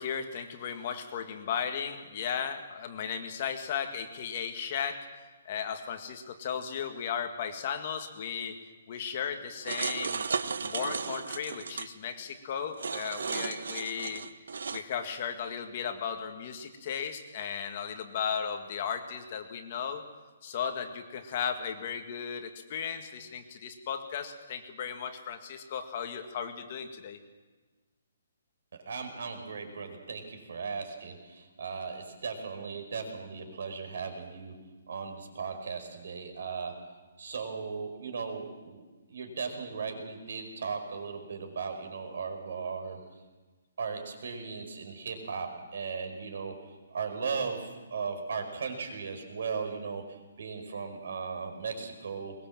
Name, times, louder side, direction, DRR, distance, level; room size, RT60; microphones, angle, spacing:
voice 1, 0.0-5.1 5.5-8.6 8.9-10.2 10.6-14.2 14.7-20.0 20.4-27.2, left 7 dB, 35° left, 6 dB, 1.8 m, -35 dB
sound 1, 9.6-11.9 12.8-14.8, right 5 dB, 80° right, 1.2 m, -34 dB
voice 2, 28.8-34.5 34.9-36.7 37.2-38.8 39.1-43.0 43.8-52.3, right 5 dB, 60° right, 5 dB, 5.1 m, -37 dB
22.0 x 21.5 x 7.6 m, 1.3 s
hypercardioid pair, 170°, 0 cm